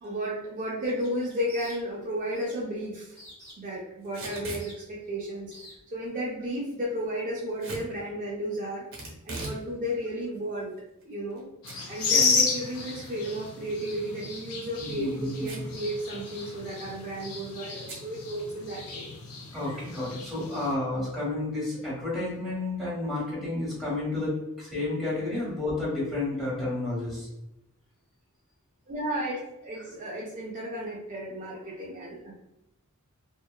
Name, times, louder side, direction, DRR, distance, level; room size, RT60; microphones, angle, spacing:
voice 1, 0.0-3.2 3.6-5.5 5.9-8.9 9.3-10.8 11.1-11.5 11.9-19.1 28.9-32.4, equal, 35° right, -5 dB, 0.4 m, -33 dB
sound 1, 0.8-2.1 2.3-2.6 3.2-3.8 4.2-5.1 5.5-5.7, equal, 60° left, 1.1 m, -48 dB
Packing tape duct tape / Tearing, 4.0-4.7 7.6-7.9 8.9-9.6 10.0-10.1 10.8-11.4 11.6-11.8 12.2-12.3 14.2-14.5 15.4-15.8 16.1-16.2 16.4-16.8 17.9-18.0, right 2 dB, 65° right, 0.9 m, -39 dB
sound 2, 11.6-20.7, left 4 dB, 80° left, 0.5 m, -32 dB
voice 2, 14.8-15.6 19.5-27.3, left 2 dB, ahead, -7 dB, 1.1 m, -31 dB
2.7 x 2.2 x 2.2 m, 0.90 s
head